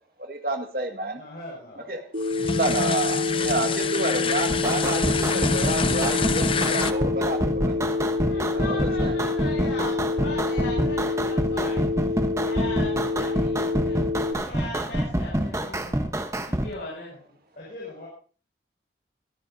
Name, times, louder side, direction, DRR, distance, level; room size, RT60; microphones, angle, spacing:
voice 1, 0.3-1.2 1.8-2.0 2.5-7.7 8.5-9.1 15.4-15.5, right 2 dB, 55° right, 5 dB, 1.9 m, -29 dB
voice 2, 1.1-2.0 8.1-9.1 17.6-18.1, left 2 dB, 50° left, -5 dB, 6.2 m, -41 dB
Telephone, 2.1-14.3, left 3 dB, 75° right, 3.0 m, -27 dB
sound 1, 2.2-6.9, left 5 dB, 30° left, 0.6 m, -27 dB
sound 2, 4.5-16.7, right 1 dB, 15° right, 1.0 m, -27 dB
voice 3, 8.3-16.0 16.3-17.1, left 2 dB, 70° left, -7 dB, 7.6 m, -39 dB
22.5 x 11.5 x 2.7 m, 0.41 s
head